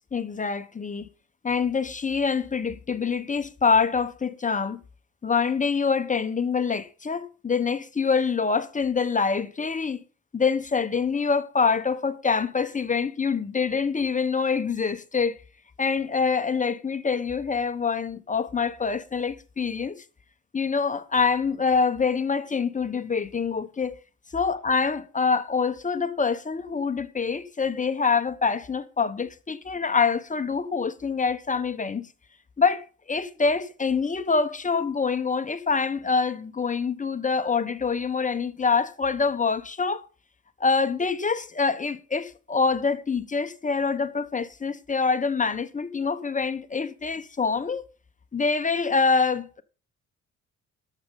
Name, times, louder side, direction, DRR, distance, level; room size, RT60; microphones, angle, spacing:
voice 1, 0.1-1.1 1.4-4.8 5.2-10.0 10.3-15.4 15.8-20.0 20.5-23.9 24.3-32.1 32.6-40.0 40.6-47.8 48.3-49.6, left 5 dB, 25° left, 1.0 m, -25 dB
12.0 x 7.5 x 5.3 m
cardioid pair, 90°, 30 cm